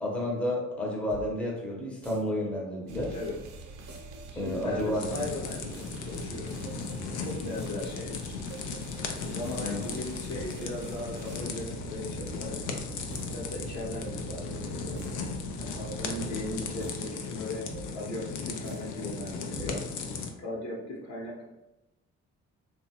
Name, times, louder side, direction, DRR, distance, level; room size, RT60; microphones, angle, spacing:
voice 1, 0.0-3.1 4.4-5.1 9.6-9.8, left 1 dB, 5° left, -3 dB, 0.6 m, -31 dB
sound 1, 1.1-20.1, right 2 dB, 35° right, 0.7 m, -47 dB
sound 2, 2.9-16.9, right 5 dB, 85° right, 0.5 m, -45 dB
voice 2, 4.3-6.5 7.2-8.4 9.2-12.6 13.2-15.0 15.6-19.8 20.4-21.5, left 1 dB, 65° left, -2 dB, 1.0 m, -38 dB
sound 3, 5.0-20.3, left 5 dB, 85° left, 0.5 m, -37 dB
2.9 x 2.3 x 2.8 m, 0.95 s
cardioid pair, 90°, 30 cm